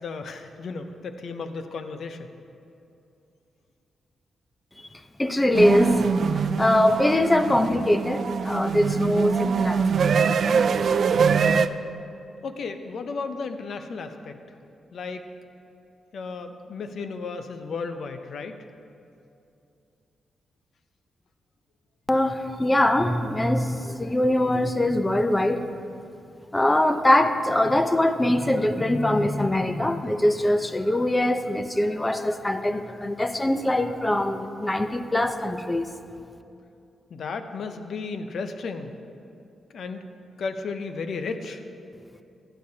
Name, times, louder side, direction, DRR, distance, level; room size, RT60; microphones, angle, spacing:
voice 1, 0.0-2.3 12.4-14.4 14.9-15.2 16.1-18.5 37.1-38.9 39.7-40.0 40.4-41.6, left 4 dB, 70° left, 8 dB, 0.7 m, -34 dB
voice 2, 5.2-10.3 22.1-25.6 26.5-35.9, left 1 dB, 15° left, 8 dB, 0.7 m, -23 dB
sound 1, 5.5-11.7, right 6 dB, 65° right, 0.3 m, -23 dB
16.0 x 10.0 x 2.8 m, 2.6 s
cardioid pair, 75°, 0 cm